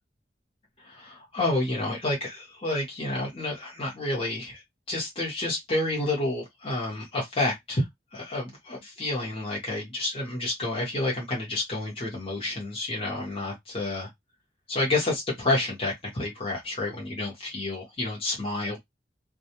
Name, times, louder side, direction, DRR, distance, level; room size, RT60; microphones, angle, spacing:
voice 1, 0.8-7.8 8.1-14.1 14.7-18.8, left 2 dB, 30° left, 0.9 m, -29 dB
2.3 x 2.1 x 2.8 m
head